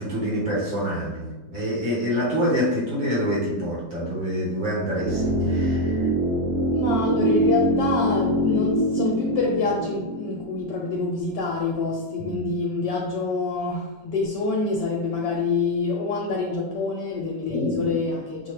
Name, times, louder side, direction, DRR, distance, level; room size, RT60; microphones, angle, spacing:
voice 1, 0.0-6.1 12.2-12.4 17.5-18.0, equal, 80° right, -6 dB, 2.0 m, -26 dB
sound 1, 5.0-11.1 11.3-11.4, right 1 dB, 65° right, 1.3 m, -24 dB
voice 2, 6.7-18.5, left 4 dB, 75° left, -1 dB, 1.2 m, -26 dB
6.1 x 2.3 x 3.1 m, 1.2 s
omnidirectional pair, 2.1 m